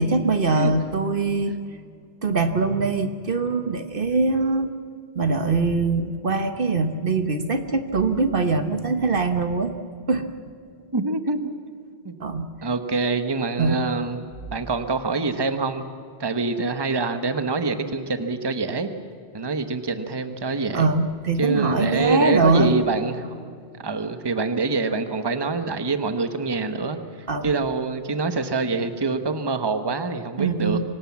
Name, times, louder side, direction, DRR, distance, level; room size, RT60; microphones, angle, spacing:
voice 1, 0.0-1.6 2.2-4.7 5.1-9.7 10.1-10.3 12.2-12.5 13.6-13.8 20.7-22.7 27.3-27.5 30.4-30.8, right 3 dB, 55° right, 8 dB, 1.3 m, -22 dB
voice 2, 10.9-11.4 12.0-12.1 12.6-14.2 14.5-15.8 16.2-18.9 19.3-20.9 21.4-23.4 23.8-27.0 27.4-30.8, right 3 dB, 25° right, 9 dB, 1.1 m, -25 dB
25.0 x 19.0 x 7.3 m, 2.4 s
omnidirectional pair, 1.1 m